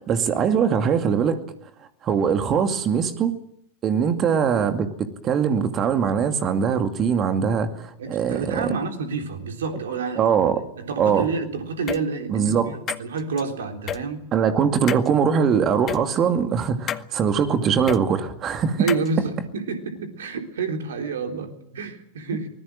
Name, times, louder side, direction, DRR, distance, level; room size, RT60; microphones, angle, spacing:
voice 1, 0.0-1.4 2.0-3.3 3.8-8.7 10.2-10.6 11.0-11.3 12.3-12.7 14.3-18.9, right 7 dB, 30° right, 8 dB, 2.4 m, -22 dB
voice 2, 8.0-10.2 10.8-14.2 18.8-22.5, right 4 dB, 60° right, 5 dB, 3.6 m, -29 dB
sound 1, 11.9-12.0 12.9-13.4 13.9-14.0 14.9-15.1 15.9-16.0 16.9-17.1 17.9-18.0 18.9-19.1, left 10 dB, 30° left, 1.0 m, -29 dB
24.5 x 20.0 x 7.7 m, 0.73 s
figure-of-eight pair, 90°, 0 cm